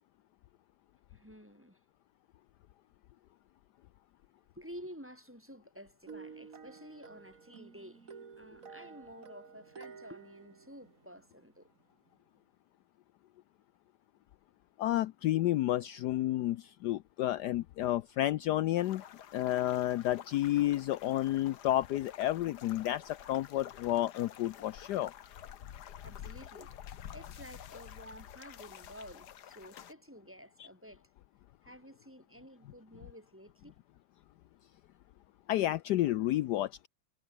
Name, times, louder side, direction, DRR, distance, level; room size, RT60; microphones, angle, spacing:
voice 1, 1.1-1.8 4.5-11.7 26.0-26.8 27.1-31.1 31.6-33.8, equal, 5° right, 3.1 m, -51 dB
sound 1, 6.1-11.5, right 5 dB, 40° right, 2.1 m, -51 dB
voice 2, 14.8-19.0 19.3-25.1 35.5-36.9, left 14 dB, 75° left, 0.9 m, -31 dB
sound 2, 18.8-29.9, left 10 dB, 55° left, 1.5 m, -50 dB
omnidirectional pair, 2.3 m